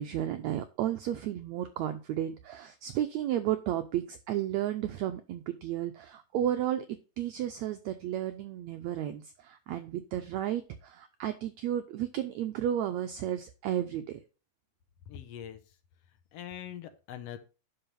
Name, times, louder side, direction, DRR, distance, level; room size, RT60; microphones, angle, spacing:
voice 1, 0.0-14.2, right 11 dB, 85° right, 8 dB, 1.5 m, -33 dB
voice 2, 15.1-15.6 16.3-17.4, left 10 dB, 70° left, 9 dB, 1.5 m, -42 dB
11.5 x 4.8 x 5.3 m, 0.33 s
omnidirectional pair, 4.0 m